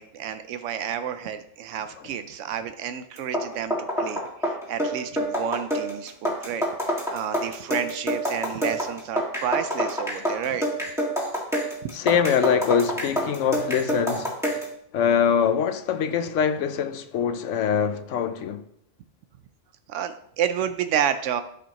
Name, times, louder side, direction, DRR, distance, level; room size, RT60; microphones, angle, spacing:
voice 1, 0.0-10.7 11.8-11.9 19.9-21.4, right 9 dB, 85° right, 0.9 m, -30 dB
sound 1, 3.2-14.7, equal, ahead, 1.8 m, -27 dB
voice 2, 11.9-14.3 14.9-18.6, left 7 dB, 90° left, 1.0 m, -23 dB
12.5 x 5.1 x 3.0 m
omnidirectional pair, 1.2 m